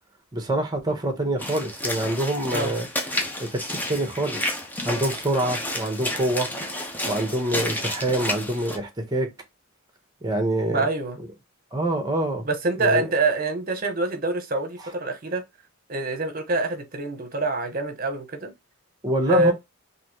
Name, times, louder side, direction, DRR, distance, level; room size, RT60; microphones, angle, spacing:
voice 1, 0.3-2.9 3.4-4.4 4.8-6.5 7.0-9.3 10.2-10.9 11.7-12.4 12.8-13.1 19.0-19.5, right 1 dB, 20° right, 1.1 m, -25 dB
Walk footsteps / Splash splatter, 1.4-8.8, left 1 dB, 10° left, 0.7 m, -31 dB
voice 2, 10.7-11.2 12.4-15.4 15.9-18.5 19.3-19.5, right 2 dB, 45° right, 1.1 m, -25 dB
4.0 x 2.8 x 3.1 m
head